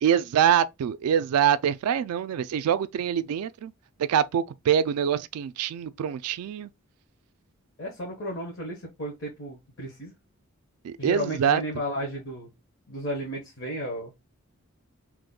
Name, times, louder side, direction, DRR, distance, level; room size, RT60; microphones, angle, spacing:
voice 1, 0.0-3.7 4.1-6.7 10.8-11.6, right 8 dB, 85° right, 0.3 m, -24 dB
voice 2, 7.8-10.1 11.0-12.5 12.9-14.1, equal, 55° left, 1.0 m, -33 dB
2.9 x 2.1 x 3.7 m
head